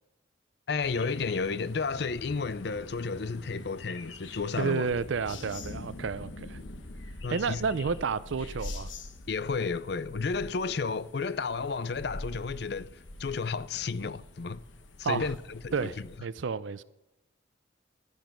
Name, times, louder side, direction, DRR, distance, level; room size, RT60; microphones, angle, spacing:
voice 1, 0.7-4.9 7.2-7.7 9.3-14.6 15.0-16.1, left 4 dB, 60° left, 0.5 m, -32 dB
sound 1, 0.8-16.2, left 2 dB, 80° left, 1.1 m, -45 dB
voice 2, 4.6-6.6 7.3-8.9 15.0-15.3 15.7-15.9 16.2-16.8, right 5 dB, 80° right, 0.5 m, -30 dB
13.0 x 10.5 x 5.2 m
head